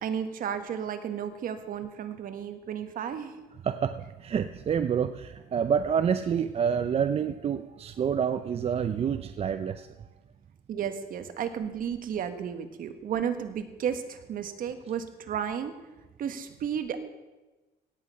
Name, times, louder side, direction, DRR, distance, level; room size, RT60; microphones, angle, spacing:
voice 1, 0.0-3.4 10.7-15.7 16.2-17.0, right 8 dB, 55° right, 9 dB, 1.5 m, -33 dB
voice 2, 3.6-10.1, right 7 dB, 35° right, 10 dB, 0.5 m, -28 dB
17.0 x 8.4 x 5.6 m, 1.1 s
cardioid pair, 110°, 17 cm